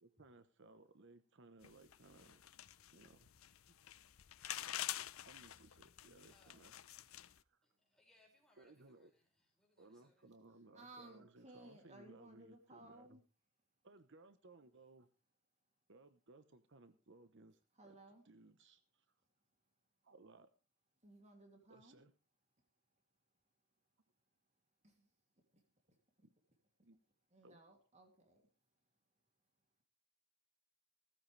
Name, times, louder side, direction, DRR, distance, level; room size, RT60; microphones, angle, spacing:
voice 1, 0.0-2.4 2.9-3.3 5.3-6.7 7.3-7.7 8.6-9.1 9.8-13.2 13.8-15.1 15.9-19.1 20.0-20.5 21.7-22.1 26.2-26.3 26.8-27.0 27.4-27.6, right 2 dB, 60° right, 1.0 m, -62 dB
sound 1, 1.6-7.4, left 12 dB, 90° left, 0.7 m, -48 dB
voice 2, 6.3-6.7 7.6-10.3, left 2 dB, ahead, 5.8 m, -73 dB
voice 3, 10.7-13.2 17.8-18.2 21.0-22.0 24.8-25.1 27.3-28.4, right 1 dB, 35° right, 2.8 m, -59 dB
17.0 x 14.5 x 3.4 m
head